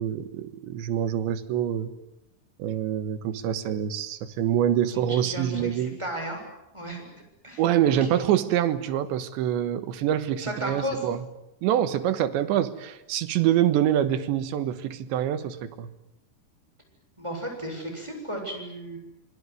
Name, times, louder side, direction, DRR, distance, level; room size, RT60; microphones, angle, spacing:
voice 1, 0.0-1.9 2.6-6.0 7.6-11.2 11.6-15.9, right 10 dB, 85° right, 11 dB, 3.7 m, -25 dB
voice 2, 4.9-6.4 6.7-7.1 7.4-8.3 10.4-11.1 17.2-19.0, right 1 dB, 5° right, 2 dB, 7.0 m, -34 dB
27.0 x 22.0 x 9.6 m, 0.87 s
omnidirectional pair, 5.0 m